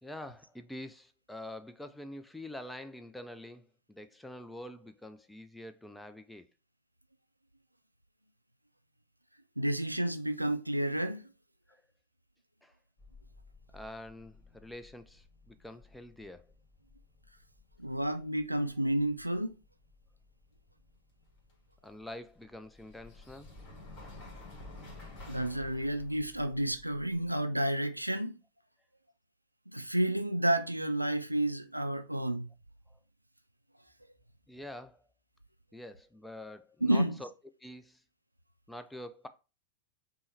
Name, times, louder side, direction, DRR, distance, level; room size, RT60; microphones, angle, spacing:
voice 1, 0.0-6.5 11.7-11.8 12.6-12.7 13.7-16.5 21.8-23.5 24.0-24.1 34.5-35.0 35.7-37.3 37.6-38.0 38.7-39.3, left 1 dB, 5° left, 0.4 m, -46 dB
voice 2, 9.6-11.2 17.8-19.5 25.3-28.4 29.7-32.5 36.8-37.1, right 1 dB, 90° right, 0.3 m, -30 dB
sound 1, 13.0-27.4, left 2 dB, 35° left, 1.6 m, -53 dB
5.3 x 2.1 x 3.2 m
figure-of-eight pair, 90°, 0 cm